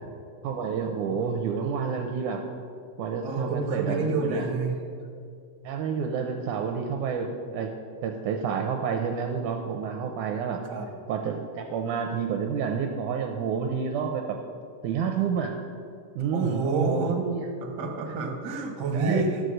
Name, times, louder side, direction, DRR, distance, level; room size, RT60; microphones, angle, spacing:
voice 1, 0.4-2.5 3.0-4.5 5.6-7.7 8.0-10.6 11.1-14.2 14.8-15.5 16.2-17.5 18.9-19.2, right 6 dB, 75° right, 4 dB, 2.0 m, -29 dB
voice 2, 3.2-4.8 10.7-10.9 16.3-17.1 17.8-19.4, right 3 dB, 45° right, 1 dB, 1.5 m, -28 dB
13.0 x 6.7 x 6.4 m, 2.4 s
omnidirectional pair, 3.9 m